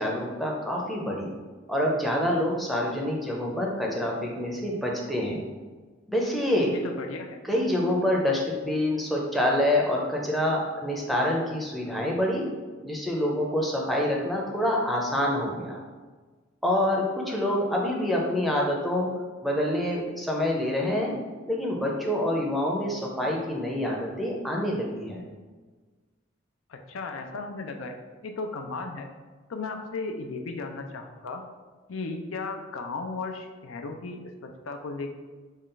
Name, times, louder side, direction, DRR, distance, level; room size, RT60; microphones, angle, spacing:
voice 1, 0.0-1.3 1.7-5.4 6.1-6.7 7.4-12.4 12.8-15.8 16.6-19.1 19.4-21.1 21.5-25.2, left 1 dB, ahead, -2 dB, 0.5 m, -26 dB
voice 2, 6.7-7.4 26.7-27.9 28.2-29.1 29.5-31.4 31.9-35.1, left 3 dB, 80° left, 4 dB, 0.5 m, -35 dB
5.3 x 2.4 x 3.8 m, 1.4 s
head